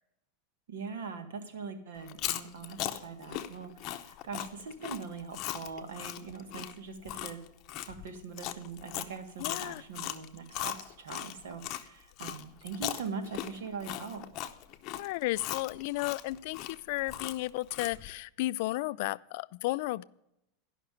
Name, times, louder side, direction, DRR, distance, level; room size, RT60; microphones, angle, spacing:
voice 1, 0.7-7.5 7.8-14.3, right 5 dB, 85° right, 6 dB, 1.7 m, -42 dB
Chewing mastication, 2.0-11.8 12.2-18.1, left 13 dB, 40° left, 0.7 m, -38 dB
voice 2, 9.4-9.8 15.0-20.0, left 19 dB, 60° left, 18 dB, 0.3 m, -33 dB
11.5 x 5.8 x 8.3 m, 0.82 s
supercardioid pair, 150°, 0 cm